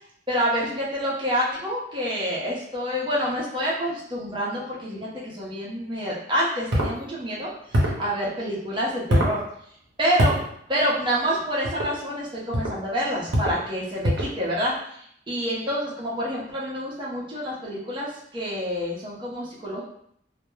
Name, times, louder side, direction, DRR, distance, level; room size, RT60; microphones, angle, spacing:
voice 1, 0.3-9.4 10.0-10.4 10.7-19.8, equal, 25° right, -5 dB, 0.6 m, -27 dB
sound 1, 6.7-6.9 7.7-8.0 9.1-9.4 10.2-10.4 11.6-11.9 12.5-12.8 13.3-13.6 14.0-14.4, equal, 65° right, 0.6 m, -23 dB
2.2 x 2.0 x 3.1 m, 0.70 s
head